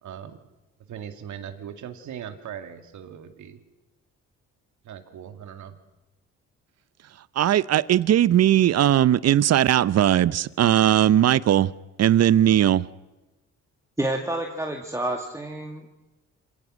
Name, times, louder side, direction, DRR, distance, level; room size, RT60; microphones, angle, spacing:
voice 1, 0.0-0.4 0.8-3.6 4.8-5.8, right 9 dB, 70° right, 2.4 m, -39 dB
voice 2, 7.1-11.7 12.0-12.9, right 11 dB, 55° right, 0.7 m, -19 dB
voice 3, 14.0-16.0, right 1 dB, 10° right, 2.2 m, -29 dB
26.5 x 18.0 x 6.4 m
cardioid pair, 90°, 30 cm